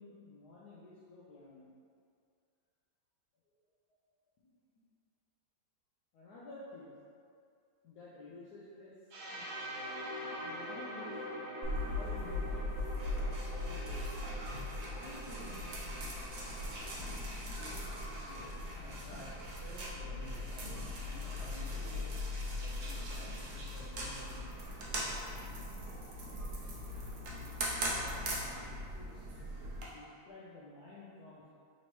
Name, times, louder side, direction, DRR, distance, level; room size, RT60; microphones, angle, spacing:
voice 1, 0.0-1.7 4.4-4.8 6.1-7.0 7.8-9.5 10.4-11.4 11.7-12.8 13.5-14.1 15.0-15.7 27.2-29.3 29.9-31.6, left 2 dB, 75° left, -8 dB, 1.0 m, -52 dB
sound 1, 9.1-16.9, equal, 85° right, 1.6 m, -45 dB
sound 2, 11.6-29.9, left 1 dB, 65° right, 0.8 m, -39 dB
voice 2, 18.2-19.3 19.6-20.7 21.0-22.1 22.5-24.4 24.8-25.7, equal, 40° left, -10 dB, 1.5 m, -53 dB
4.2 x 2.9 x 3.0 m, 2.3 s
omnidirectional pair, 2.2 m